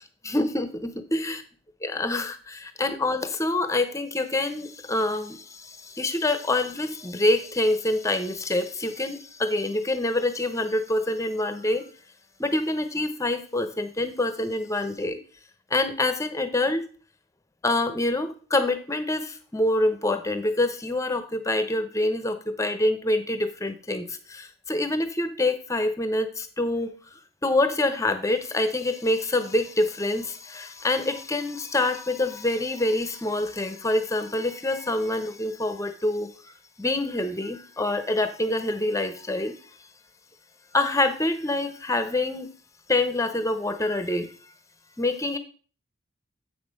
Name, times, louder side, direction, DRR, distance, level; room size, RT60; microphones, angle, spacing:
voice 1, 0.2-1.4 1.8-11.9 12.4-15.2 15.7-16.9 17.6-26.9 27.4-36.4 36.8-39.6 40.7-42.5 42.9-44.3 45.0-45.4, left 2 dB, 15° left, 9 dB, 0.9 m, -26 dB
8.0 x 6.0 x 5.2 m, 0.40 s
head